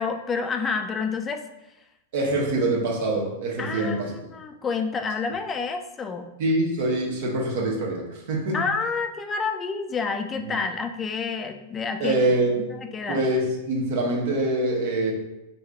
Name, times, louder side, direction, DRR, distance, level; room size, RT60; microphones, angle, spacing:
voice 1, 0.0-1.4 3.6-4.0 4.3-6.3 8.5-12.2 12.8-13.2, left 5 dB, 20° left, 6 dB, 0.3 m, -28 dB
voice 2, 2.1-4.1 6.4-8.7 10.4-10.6 12.0-12.7 13.1-15.1, right 2 dB, 65° right, -1 dB, 1.0 m, -24 dB
4.5 x 2.7 x 2.3 m, 0.94 s
hypercardioid pair, 110°, 0 cm